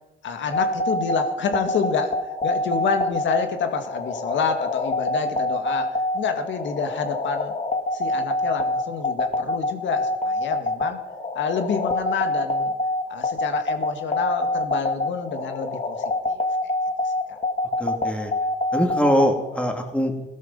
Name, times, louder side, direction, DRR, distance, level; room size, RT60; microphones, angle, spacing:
voice 1, 0.2-7.5 7.9-11.0 11.3-12.7 13.1-16.7 17.0-17.4, left 6 dB, 70° left, 6 dB, 2.0 m, -28 dB
sound 1, 0.5-19.7, left 1 dB, 35° left, 2.3 m, -25 dB
voice 2, 17.8-18.3 18.7-20.3, equal, 5° left, 4 dB, 2.6 m, -22 dB
16.0 x 13.0 x 5.5 m, 1.0 s
cardioid pair, 90°, 20 cm